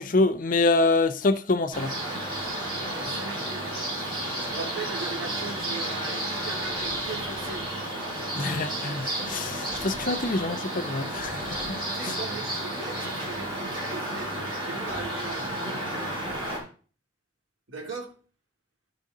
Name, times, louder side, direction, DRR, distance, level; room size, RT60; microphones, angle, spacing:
voice 1, 0.0-1.9 8.4-11.8 12.0-12.1, left 3 dB, 40° left, 0.6 m, -26 dB
sound 1, 1.7-16.6, right 1 dB, 25° right, 3.6 m, -32 dB
voice 2, 2.9-7.6 12.0-15.5 17.7-18.1, right 3 dB, 80° right, 2.9 m, -39 dB
12.0 x 5.1 x 3.8 m
head